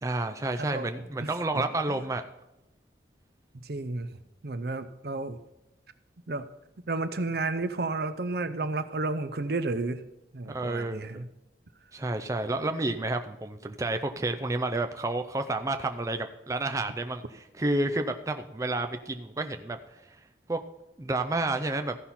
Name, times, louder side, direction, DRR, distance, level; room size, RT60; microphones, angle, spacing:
voice 1, 0.0-2.2 10.5-11.2 11.9-19.8 20.1-20.2 20.5-20.6 21.0-22.0, right 2 dB, 20° right, 6 dB, 0.4 m, -30 dB
voice 2, 1.5-2.0 3.6-4.1 4.4-5.4 6.3-6.5 6.9-10.0 10.3-11.3, right 3 dB, 60° right, 11 dB, 0.7 m, -32 dB
15.0 x 5.7 x 4.2 m, 0.92 s
head